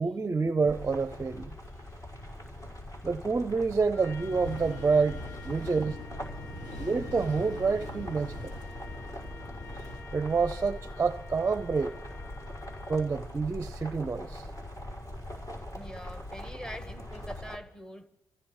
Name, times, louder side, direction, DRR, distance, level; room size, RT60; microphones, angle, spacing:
voice 1, 0.0-1.6 3.0-6.0 6.8-8.5 10.1-12.0 12.9-14.5, right 4 dB, 25° right, 0.6 m, -28 dB
sound 1, 0.7-17.6, left 1 dB, 45° left, 5.0 m, -42 dB
Trumpet, 3.9-13.3, left 5 dB, 30° left, 3.2 m, -51 dB
sound 2, 4.2-10.0, left 1 dB, 85° left, 4.6 m, -43 dB
voice 2, 6.3-6.9 15.7-18.1, equal, 10° left, 1.4 m, -45 dB
28.0 x 15.5 x 3.2 m
cardioid pair, 90°, 7 cm